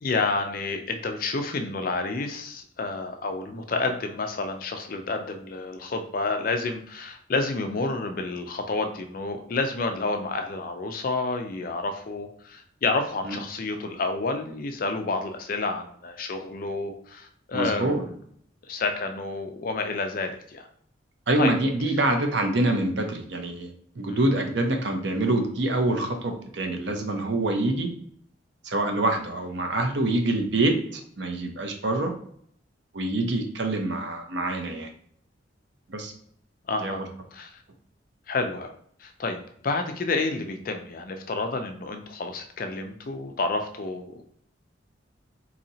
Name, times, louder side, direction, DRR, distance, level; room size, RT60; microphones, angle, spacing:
voice 1, 0.0-18.2 18.7-20.7 21.4-21.5 24.1-24.3 36.7-37.1 37.3-37.6 38.3-38.7 39.0-44.4, left 3 dB, 45° left, 5 dB, 0.4 m, -29 dB
voice 2, 17.5-18.0 21.3-23.7 24.0-27.9 28.6-32.1 32.9-34.9 35.9-36.1 36.8-37.0, right 2 dB, 65° right, 4 dB, 0.6 m, -25 dB
4.0 x 2.8 x 2.7 m, 0.64 s
head